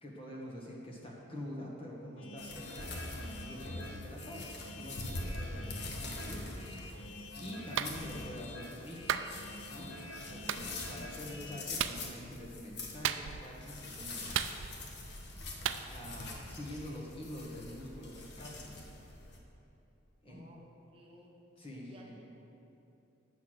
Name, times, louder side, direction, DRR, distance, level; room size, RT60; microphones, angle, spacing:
voice 1, 0.0-5.7 6.0-7.0 7.4-9.2 9.6-9.9 10.3-14.4 15.9-18.8 20.2-20.5 21.6-22.2, left 1 dB, 25° left, -3 dB, 1.3 m, -46 dB
sound 1, 2.2-11.6, left 2 dB, 80° left, 0.8 m, -47 dB
sound 2, 2.4-19.4, left 2 dB, 55° left, 1.0 m, -44 dB
voice 2, 5.1-5.5 20.3-20.6 20.9-21.3 21.9-22.3, right 1 dB, 25° right, -1 dB, 0.7 m, -57 dB
Clapping, 7.8-8.0 9.1-9.3 10.5-10.6 11.8-12.0 13.0-13.5 14.3-14.9 15.7-15.8, right 9 dB, 70° right, 0.3 m, -33 dB
8.4 x 5.8 x 6.2 m, 2.9 s
head